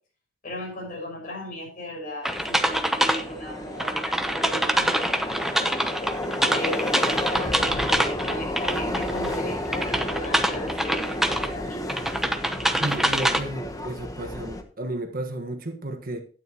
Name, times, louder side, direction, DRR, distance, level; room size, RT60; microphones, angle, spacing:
voice 1, 0.4-5.5 6.4-12.3, left 1 dB, 45° left, 5.8 m, -36 dB
Subway metro underground, 2.3-14.6, left 1 dB, 20° left, 1.1 m, -32 dB
sound 1, 2.3-3.2 3.8-9.4 9.7-11.5 11.9-13.4, right 1 dB, ahead, 0.8 m, -25 dB
voice 2, 12.8-16.2, right 1 dB, 50° right, 1.4 m, -32 dB
12.0 x 9.7 x 3.0 m
head